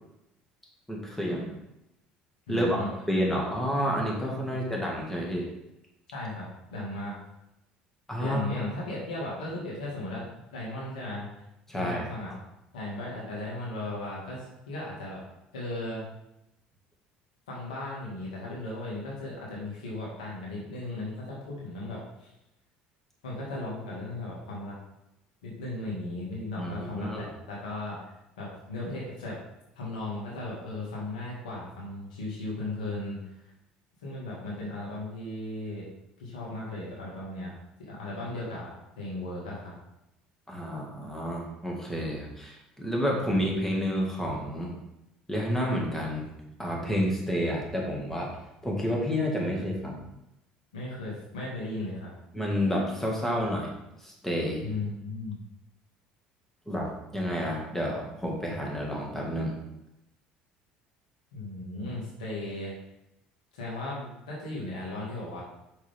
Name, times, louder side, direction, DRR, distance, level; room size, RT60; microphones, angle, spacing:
voice 1, 0.9-1.5 2.5-2.8 3.1-5.5 8.1-8.5 11.7-12.1 26.6-27.3 40.5-44.7 45.3-46.3 46.6-48.4 48.6-50.1 52.3-53.7 54.0-54.6 56.7-59.5, equal, 10° left, -2 dB, 2.3 m, -29 dB
voice 2, 2.5-2.9 4.5-4.6 6.1-6.4 6.7-7.2 8.2-10.2 10.5-11.3 11.7-12.3 12.7-15.2 15.5-16.0 17.5-22.3 23.2-24.8 25.4-28.1 28.4-29.4 29.7-33.2 34.0-35.8 36.2-37.5 37.8-39.7 50.7-52.1 54.6-55.4 61.3-62.7 63.5-65.4, left 2 dB, 85° left, -5 dB, 2.4 m, -36 dB
6.2 x 6.0 x 3.8 m, 0.86 s
hypercardioid pair, 65°, 4 cm